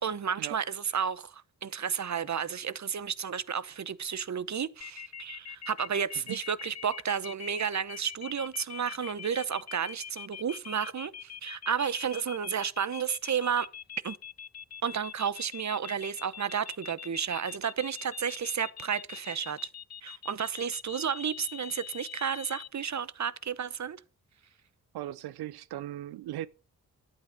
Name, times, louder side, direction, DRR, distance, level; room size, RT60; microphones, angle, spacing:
voice 1, 0.0-13.7 14.0-14.2 14.8-19.7 20.0-24.0, right 7 dB, 50° right, 0.9 m, -32 dB
sound 1, 4.8-22.7, left 8 dB, 45° left, 0.6 m, -43 dB
voice 2, 24.9-26.5, right 13 dB, 90° right, 0.5 m, -38 dB
11.5 x 8.5 x 5.2 m
cardioid pair, 45°, 37 cm